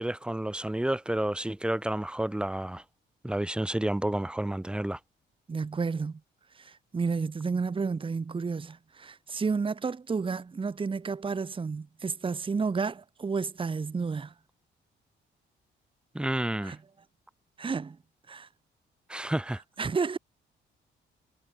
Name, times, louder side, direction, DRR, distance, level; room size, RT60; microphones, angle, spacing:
voice 1, 0.0-2.8 3.2-5.0 16.1-16.7 19.1-19.6, right 1 dB, 5° right, 0.6 m, -30 dB
voice 2, 5.5-6.2 6.5-14.3 16.6-16.8 17.6-18.0 18.3-18.5 19.8-20.2, right 5 dB, 25° right, 1.1 m, -31 dB
cardioid pair, 90°, 20 cm